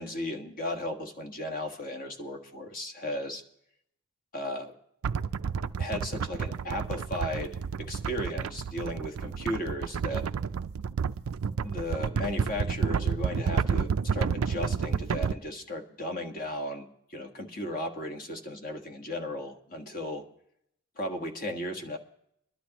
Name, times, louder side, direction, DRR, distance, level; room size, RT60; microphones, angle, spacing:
voice 1, 0.0-3.4 4.3-4.7 5.8-10.3 11.6-20.3 21.0-22.0, left 1 dB, 40° left, 3 dB, 1.5 m, -35 dB
sound 1, 5.0-15.3, right 6 dB, 70° right, 0.4 m, -30 dB
22.5 x 11.5 x 3.0 m, 0.74 s
head